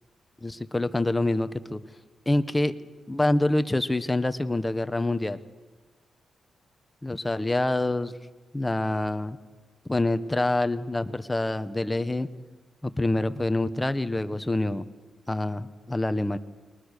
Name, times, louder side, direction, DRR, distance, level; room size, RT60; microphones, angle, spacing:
voice 1, 0.4-1.8 2.3-2.7 3.1-5.4 7.0-8.1 8.5-9.4 9.9-12.3 12.8-14.8 15.3-16.4, left 2 dB, 15° left, 11 dB, 1.2 m, -26 dB
30.0 x 22.5 x 6.7 m, 1.3 s
cardioid pair, 75°, 0 cm